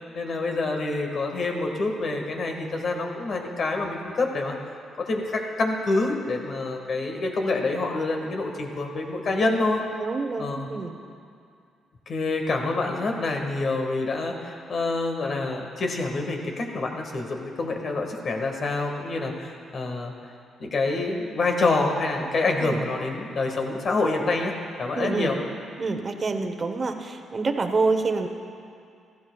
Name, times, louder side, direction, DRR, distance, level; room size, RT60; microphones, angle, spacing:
voice 1, 0.1-4.5 5.0-9.8 10.4-10.7 12.1-20.1 20.6-25.4, left 3 dB, 50° left, 2 dB, 1.7 m, -27 dB
voice 2, 10.0-11.0 22.6-22.8 24.9-25.3 25.8-28.3, right 3 dB, 35° right, 6 dB, 1.0 m, -27 dB
15.5 x 14.5 x 2.4 m, 2.4 s
cardioid pair, 90°, 0 cm